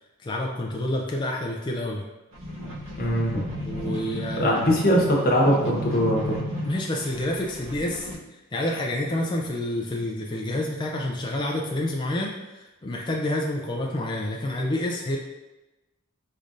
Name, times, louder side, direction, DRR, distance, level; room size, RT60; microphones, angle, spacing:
voice 1, 0.2-2.0 3.6-4.7 6.6-15.2, left 1 dB, 20° left, -1 dB, 0.4 m, -28 dB
sound 1, 2.3-8.1, equal, 85° right, 1.2 m, -34 dB
voice 2, 3.0-3.5 4.4-6.4, equal, 45° left, -2 dB, 1.0 m, -21 dB
5.1 x 3.2 x 2.5 m, 1.1 s
head